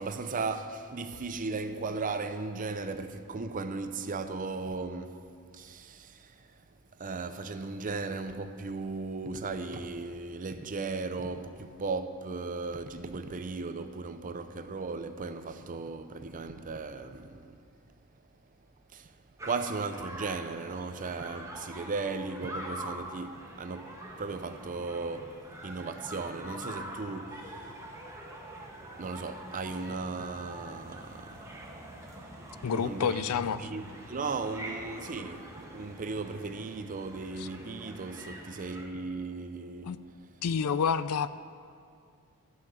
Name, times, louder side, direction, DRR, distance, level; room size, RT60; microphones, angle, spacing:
voice 1, 0.0-5.2 5.5-6.6 7.0-17.6 18.9-19.1 19.4-27.7 29.0-31.5 32.7-33.3 33.6-39.9, right 3 dB, 35° right, 0.6 m, -36 dB
sound 1, 19.4-38.9, right 1 dB, 15° right, 1.2 m, -45 dB
voice 2, 32.6-33.7 37.4-37.5 39.8-40.0 40.4-41.3, left 6 dB, 70° left, 0.4 m, -29 dB
13.5 x 5.7 x 7.6 m
head